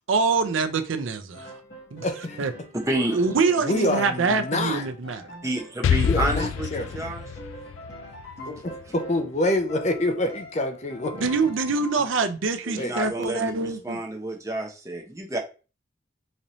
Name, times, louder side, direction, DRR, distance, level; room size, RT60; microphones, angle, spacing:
voice 1, 0.0-1.5 1.9-2.0 2.4-2.5 3.1-5.2 11.2-14.0, right 4 dB, 90° right, 0.5 m, -25 dB
Piano, 1.3-9.4 9.7-12.1, equal, 55° left, 1.6 m, -43 dB
voice 2, 2.0-2.4 3.6-4.9 6.0-7.1 8.5-11.2 12.8-13.0, left 1 dB, 35° left, 0.5 m, -27 dB
voice 3, 2.8-3.2 5.4-7.2 12.6-15.4, right 1 dB, 15° right, 0.7 m, -29 dB
Explosion, 5.8-9.6, left 7 dB, 85° left, 0.3 m, -27 dB
4.1 x 2.6 x 3.1 m
head